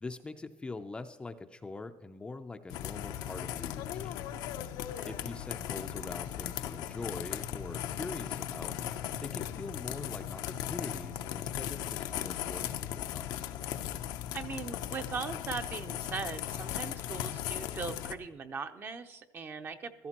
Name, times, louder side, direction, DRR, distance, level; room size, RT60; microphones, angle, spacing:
voice 1, 0.0-4.2 5.0-8.7 9.2-13.3, left 3 dB, 15° left, 7 dB, 0.5 m, -43 dB
sound 1, 2.7-18.1, left 11 dB, 75° left, 0.7 m, -37 dB
voice 2, 14.3-20.1, right 5 dB, 30° right, 8 dB, 0.7 m, -39 dB
15.5 x 13.5 x 2.9 m, 1.1 s
cardioid pair, 135°, 7 cm